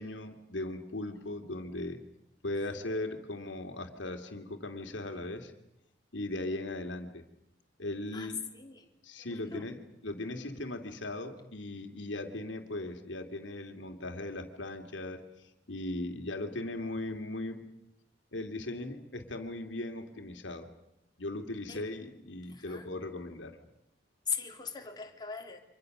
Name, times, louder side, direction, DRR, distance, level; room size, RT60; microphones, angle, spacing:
voice 1, 0.0-2.0 2.4-5.5 6.1-7.2 7.8-8.4 9.0-17.6 18.3-20.7 21.2-23.6, left 2 dB, 85° left, 5 dB, 2.5 m, -38 dB
voice 2, 24.3-25.6, left 6 dB, 25° left, 3 dB, 3.0 m, -38 dB
29.5 x 25.5 x 6.6 m, 0.83 s
head